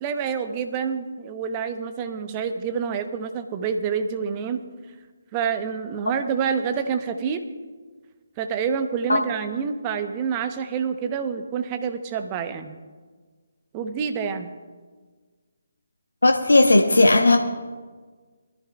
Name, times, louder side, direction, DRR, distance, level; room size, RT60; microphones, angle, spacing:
voice 1, 0.0-4.6 5.3-7.4 8.4-12.8 13.7-14.5, right 6 dB, 20° right, 8 dB, 0.9 m, -27 dB
voice 2, 16.2-17.4, left 2 dB, 70° left, 5 dB, 1.1 m, -16 dB
22.0 x 13.5 x 2.4 m, 1.5 s
figure-of-eight pair, 145°, 0 cm